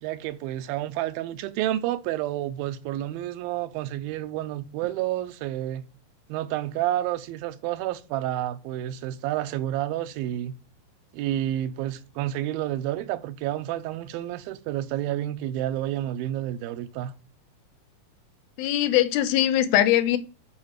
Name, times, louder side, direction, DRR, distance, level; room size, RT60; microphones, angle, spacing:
voice 1, 0.0-5.9 6.3-10.6 11.1-17.1, right 13 dB, 85° right, 2.5 m, -30 dB
voice 2, 18.6-20.2, left 12 dB, 85° left, 2.6 m, -21 dB
10.5 x 4.7 x 6.5 m
omnidirectional pair, 4.2 m